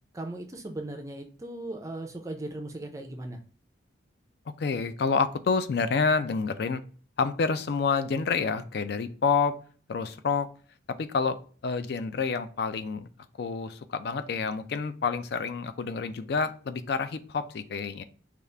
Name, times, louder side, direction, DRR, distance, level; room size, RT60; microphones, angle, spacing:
voice 1, 0.1-3.4, right 2 dB, 15° right, 4 dB, 0.4 m, -38 dB
voice 2, 4.6-6.8 7.2-9.6 9.9-10.5 11.0-13.1 13.4-18.0, left 5 dB, 55° left, 11 dB, 0.3 m, -28 dB
5.0 x 2.4 x 3.3 m, 0.41 s
head